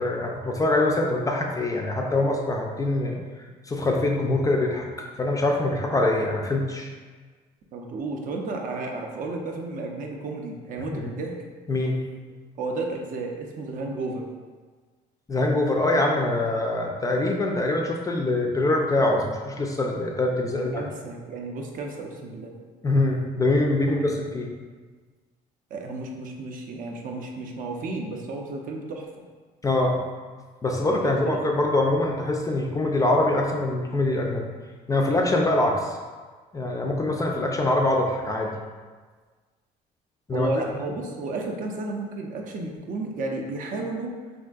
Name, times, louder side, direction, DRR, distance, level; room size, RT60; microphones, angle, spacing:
voice 1, 0.0-3.2 3.7-6.9 10.9-11.1 11.7-12.0 15.3-20.8 22.8-24.5 29.6-30.0 30.6-34.5 34.9-36.0 36.5-38.5 40.3-40.5 40.9-41.0, left 2 dB, 20° left, 0 dB, 0.3 m, -24 dB
voice 2, 7.7-11.3 12.6-14.3 20.4-22.5 23.9-24.0 25.7-29.1 30.9-31.4 40.3-44.1, right 3 dB, 55° right, 1 dB, 0.5 m, -32 dB
3.5 x 2.5 x 2.3 m, 1.5 s
cardioid pair, 110°, 17 cm